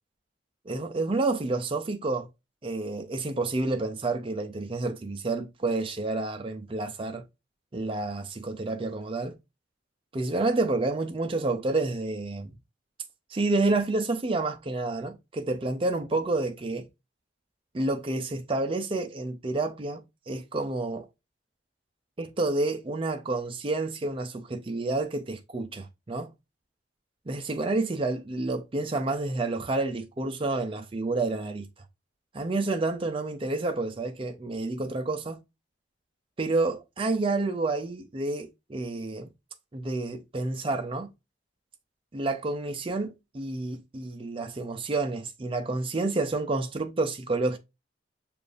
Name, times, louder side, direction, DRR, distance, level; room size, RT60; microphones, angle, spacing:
voice 1, 0.7-2.3 2.6-7.2 7.7-9.4 10.1-12.5 13.3-16.9 17.7-21.1 22.2-26.3 27.3-31.7 32.3-35.4 36.4-39.3 39.7-41.1 42.1-47.6, right 2 dB, 30° right, 0.5 m, -29 dB
6.7 x 2.5 x 2.4 m
head